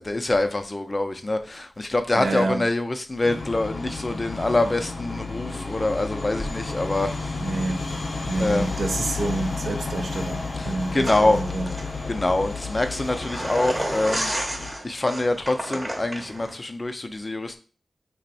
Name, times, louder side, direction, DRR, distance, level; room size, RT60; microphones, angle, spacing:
voice 1, 0.0-7.3 8.4-8.8 10.6-11.4 12.1-14.3 14.8-17.6, left 2 dB, 35° left, 0.4 m, -25 dB
voice 2, 2.1-2.7 7.4-7.8 8.3-11.7, right 2 dB, 85° right, 0.4 m, -28 dB
sound 1, 3.2-14.7, left 3 dB, 65° left, 0.7 m, -32 dB
sound 2, 11.0-16.5, right 1 dB, 30° right, 0.7 m, -32 dB
2.5 x 2.0 x 3.9 m
cardioid pair, 50°, 0 cm